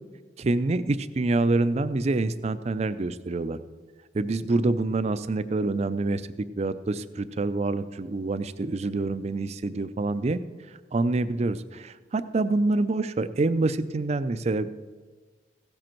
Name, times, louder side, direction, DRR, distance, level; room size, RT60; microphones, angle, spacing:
voice 1, 0.4-3.6 4.1-10.4 10.9-14.7, right 2 dB, 35° right, 13 dB, 0.4 m, -26 dB
16.0 x 7.7 x 4.5 m, 1.4 s
head